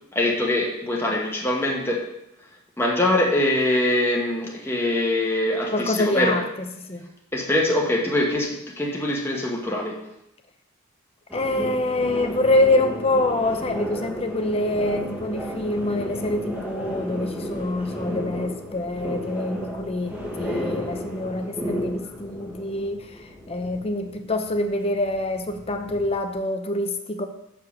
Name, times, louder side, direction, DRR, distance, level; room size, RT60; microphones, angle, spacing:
voice 1, 0.1-2.1 2.8-6.4 7.3-10.0, left 1 dB, 10° left, -1 dB, 1.1 m, -23 dB
voice 2, 5.7-7.1 11.3-27.3, left 2 dB, 30° left, 7 dB, 0.7 m, -25 dB
sound 1, 11.3-26.3, equal, 5° right, 1.3 m, -33 dB
6.5 x 5.0 x 7.0 m, 0.82 s
head